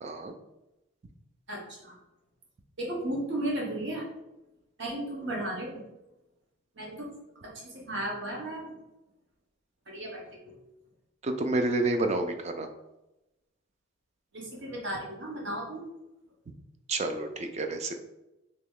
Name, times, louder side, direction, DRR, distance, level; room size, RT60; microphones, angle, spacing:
voice 1, 0.0-0.3 11.2-12.7 16.9-18.0, right 2 dB, 30° right, 6 dB, 0.3 m, -29 dB
voice 2, 1.5-1.9 2.8-4.1 4.8-5.8 6.8-7.1 7.4-8.8 9.9-10.5 14.3-15.8, right 1 dB, 55° right, -2 dB, 0.9 m, -35 dB
3.0 x 2.9 x 3.6 m, 0.96 s
head